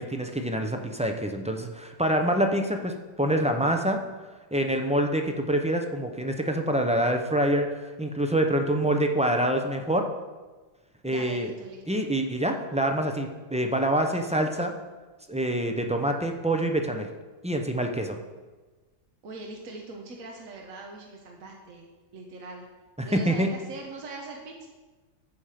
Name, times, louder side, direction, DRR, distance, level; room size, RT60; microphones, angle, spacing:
voice 1, 0.0-4.0 4.5-10.1 11.0-11.5 11.9-14.7 15.3-17.1 17.4-18.2 23.0-23.5, right 1 dB, 10° right, 4 dB, 0.4 m, -26 dB
voice 2, 11.0-12.0 18.2-18.3 19.2-21.9 22.1-22.7 23.0-24.7, right 2 dB, 75° right, 1 dB, 1.5 m, -41 dB
14.0 x 5.0 x 5.8 m, 1.3 s
omnidirectional pair, 1.4 m